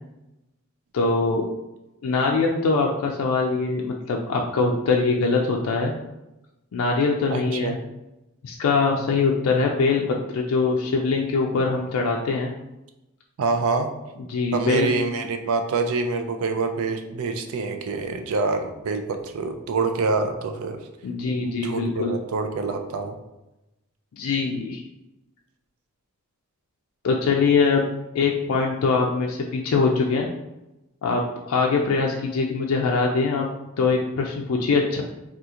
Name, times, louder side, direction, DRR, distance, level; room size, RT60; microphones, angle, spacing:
voice 1, 0.9-1.5 2.0-5.9 6.7-7.8 8.4-12.5 14.3-14.9 21.0-22.1 24.1-24.8 27.0-27.9 28.1-30.3 31.0-33.5 33.8-35.0, left 4 dB, 80° left, 0 dB, 0.4 m, -22 dB
voice 2, 7.3-7.8 13.4-13.9 14.5-20.8 21.4-23.2, right 4 dB, 70° right, 6 dB, 0.4 m, -26 dB
2.8 x 2.4 x 3.6 m, 0.96 s
head